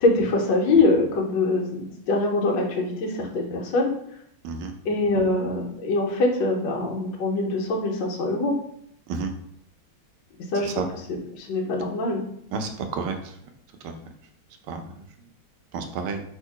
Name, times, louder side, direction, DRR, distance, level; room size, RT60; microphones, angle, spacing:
voice 1, 0.0-3.9 4.8-8.5 10.5-10.7 11.1-12.2, left 2 dB, 65° left, 0 dB, 1.4 m, -23 dB
voice 2, 12.5-13.4 13.8-13.9 14.7-14.8 15.7-16.2, right 5 dB, 80° right, 5 dB, 1.5 m, -30 dB
3.7 x 2.8 x 4.6 m, 0.71 s
omnidirectional pair, 2.3 m